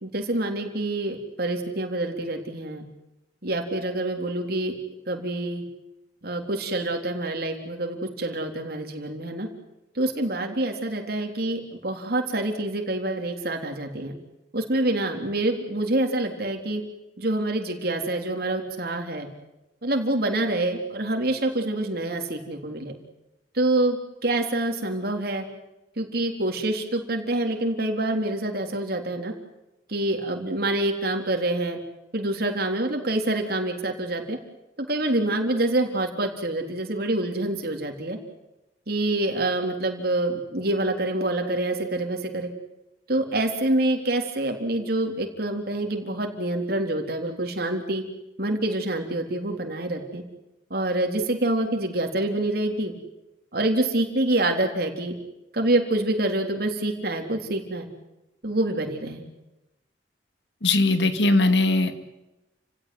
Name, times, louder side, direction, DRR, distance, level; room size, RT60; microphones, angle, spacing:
voice 1, 0.0-2.8 3.4-4.7 5.1-5.6 6.2-9.5 10.0-14.2 14.5-16.8 17.2-19.3 19.8-22.9 23.5-24.0 24.2-25.4 26.0-29.3 29.9-31.8 32.1-34.4 34.9-38.2 38.9-42.5 43.1-48.0 48.4-50.2 50.7-52.9 53.5-55.1 55.5-57.9 58.4-59.2, right 1 dB, 60° right, 3 dB, 3.8 m, -26 dB
voice 2, 60.6-62.0, left 2 dB, 80° left, 9 dB, 2.3 m, -20 dB
30.0 x 16.5 x 9.6 m, 0.99 s
head